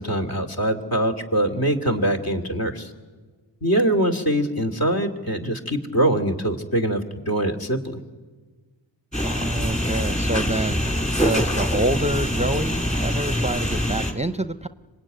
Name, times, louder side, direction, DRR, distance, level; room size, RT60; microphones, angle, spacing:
voice 1, 0.0-2.9 3.6-7.0 7.3-8.0, right 1 dB, 50° left, 6 dB, 2.8 m, -23 dB
sound 1, 9.1-14.1, equal, 15° left, 4.1 m, -24 dB
voice 2, 9.2-10.8 11.2-14.7, right 1 dB, 15° right, 11 dB, 0.7 m, -27 dB
25.0 x 20.0 x 9.4 m, 1.4 s
cardioid pair, 40°, 46 cm